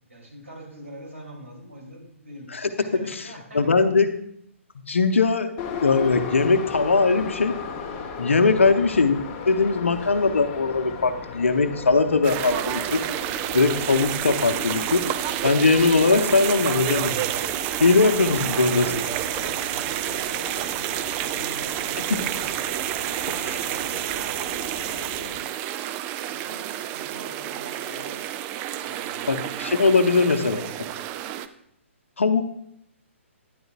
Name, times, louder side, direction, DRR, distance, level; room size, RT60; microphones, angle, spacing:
voice 1, 0.1-3.7 8.4-8.6 18.2-22.7 23.2-25.5 26.3-28.2 28.8-29.6 30.0-30.4, right 1 dB, 75° right, -2 dB, 3.5 m, -43 dB
voice 2, 2.5-3.2 3.5-4.1 4.9-5.5 5.8-7.6 8.2-9.2 9.5-13.0 13.5-15.0 15.4-17.3 17.8-18.9 29.3-30.6 32.2-32.4, left 4 dB, 65° left, 9 dB, 0.8 m, -20 dB
Subway metro underground, 5.6-25.4, left 5 dB, 25° left, 0.9 m, -38 dB
sound 1, 12.2-31.5, right 12 dB, 20° right, 0.3 m, -29 dB
12.0 x 10.5 x 2.5 m, 0.74 s
figure-of-eight pair, 125°, 7 cm